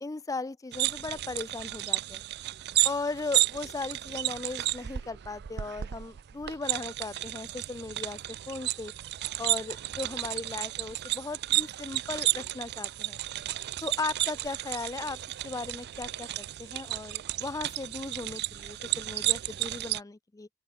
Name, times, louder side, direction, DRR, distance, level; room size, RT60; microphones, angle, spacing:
voice 1, 0.0-2.2 2.8-8.9 9.4-13.2 13.8-15.2 15.4-20.5, left 3 dB, 15° left, 0.4 m, -37 dB
sound 1, 0.7-20.0, right 15 dB, 50° right, 0.4 m, -32 dB
open air
head